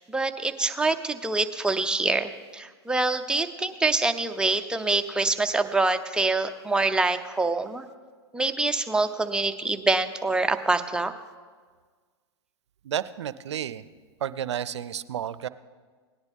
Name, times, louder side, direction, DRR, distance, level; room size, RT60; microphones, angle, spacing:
voice 1, 0.0-7.9 8.3-11.1, right 3 dB, 5° right, 7 dB, 0.6 m, -25 dB
voice 2, 12.8-13.8 14.2-15.5, right 9 dB, 85° right, 17 dB, 0.5 m, -31 dB
17.5 x 10.5 x 3.6 m, 1.5 s
hypercardioid pair, 105°, 14 cm